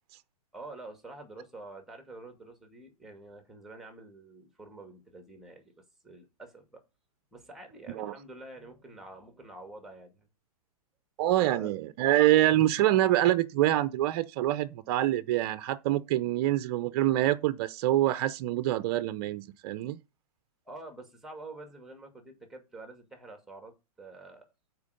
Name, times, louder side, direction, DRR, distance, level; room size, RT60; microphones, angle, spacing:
voice 1, 0.5-5.7 6.0-6.8 7.3-10.3 11.4-11.7 20.7-24.5, right 2 dB, ahead, 2.2 m, -47 dB
voice 2, 11.2-20.0, right 14 dB, 40° right, 0.6 m, -26 dB
7.1 x 4.6 x 6.5 m
hypercardioid pair, 135°, 20 cm